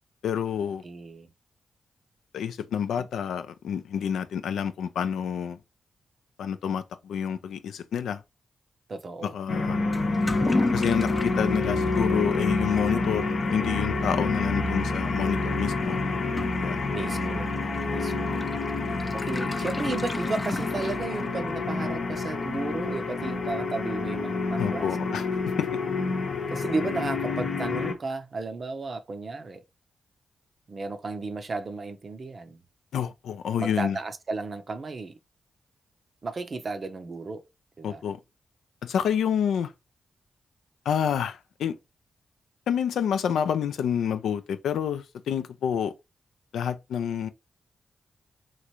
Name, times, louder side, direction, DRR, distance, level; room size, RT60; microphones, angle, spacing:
voice 1, 0.2-0.8 2.3-5.6 6.4-8.2 9.2-9.8 10.7-16.0 16.5-16.9 24.6-25.2 25.6-25.8 32.9-34.0 37.8-38.2 38.8-39.7 40.9-41.7 42.7-45.9 46.5-47.3, left 8 dB, 85° left, 0.3 m, -28 dB
voice 2, 0.8-1.3 3.0-3.1 8.9-9.3 9.7-10.0 16.9-17.5 17.9-18.4 19.1-25.2 26.5-29.6 30.7-32.6 33.6-35.2 36.2-37.4 37.8-38.0, right 3 dB, 55° right, 0.6 m, -34 dB
sound 1, 9.5-27.9, left 3 dB, 65° left, 0.7 m, -28 dB
Toilet flush / Liquid, 9.9-21.6, left 2 dB, 30° left, 0.5 m, -36 dB
3.1 x 2.5 x 2.8 m
supercardioid pair, 45°, 0 cm